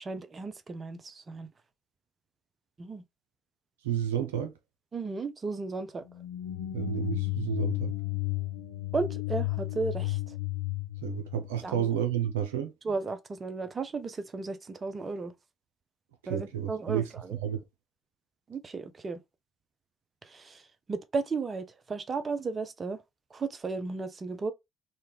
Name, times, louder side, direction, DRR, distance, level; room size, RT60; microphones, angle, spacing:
voice 1, 0.0-1.5 2.8-3.0 4.9-6.0 8.9-10.4 11.6-11.9 12.8-15.3 16.3-17.4 18.5-19.2 20.2-20.6 20.9-23.0 23.3-24.5, right 4 dB, 35° right, 0.6 m, -34 dB
voice 2, 3.8-4.5 6.7-7.9 11.0-12.7 16.3-17.6, right 9 dB, 85° right, 0.5 m, -31 dB
sound 1, 6.1-12.1, left 17 dB, 85° left, 0.5 m, -33 dB
2.7 x 2.3 x 3.3 m
hypercardioid pair, 55°, 0 cm